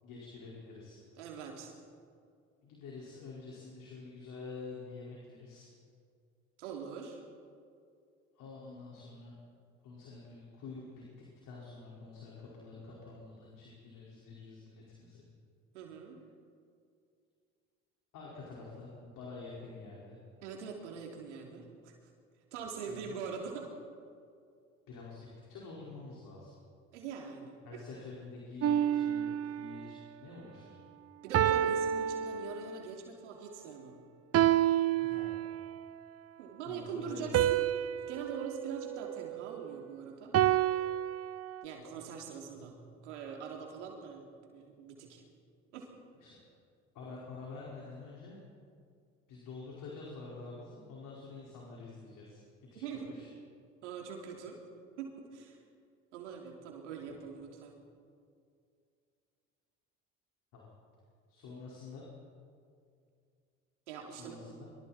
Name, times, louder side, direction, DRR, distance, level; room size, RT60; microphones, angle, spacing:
voice 1, 0.0-1.0 2.6-5.7 8.3-9.3 9.8-10.8 11.4-15.2 18.1-20.2 22.8-23.2 24.9-26.5 27.6-30.8 35.0-35.4 36.7-37.2 46.2-46.4 46.9-48.4 49.3-52.4 52.7-53.3 60.5-60.7 61.3-62.1 64.1-64.7, left 3 dB, 65° left, -4 dB, 5.2 m, -48 dB
voice 2, 1.2-1.7 6.6-7.2 15.7-16.2 20.4-21.9 22.5-23.7 26.9-27.8 31.2-34.0 36.4-40.3 41.6-45.2 45.7-45.9 52.8-53.1 53.8-54.6 55.0-55.6 56.1-57.7 63.9-64.4, right 6 dB, 90° right, 1 dB, 3.3 m, -43 dB
sound 1, 28.6-29.9 31.3-33.0 34.3-35.8 37.3-39.7 40.3-41.6, right 11 dB, 45° right, 0.7 m, -30 dB
25.5 x 24.0 x 4.4 m, 2.3 s
hypercardioid pair, 60°, 34 cm